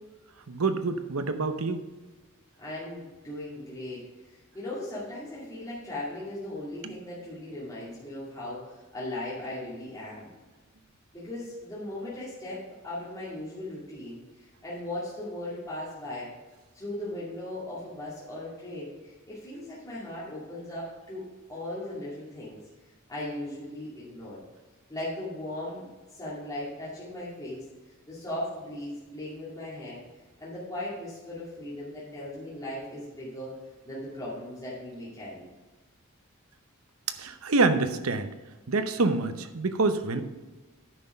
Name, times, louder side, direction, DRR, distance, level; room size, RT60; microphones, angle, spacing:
voice 1, 0.5-1.8 6.8-7.0 37.2-38.3 38.7-40.2, right 3 dB, 90° right, 9 dB, 0.8 m, -26 dB
voice 2, 2.6-4.0 4.5-10.3 11.1-14.2 14.6-16.3 16.7-21.2 21.5-22.6 23.1-24.4 24.9-25.9 26.2-27.6 28.1-30.0 30.4-33.5 33.9-35.4, left 1 dB, 20° left, -10 dB, 2.4 m, -38 dB
9.8 x 5.9 x 5.2 m, 1.2 s
head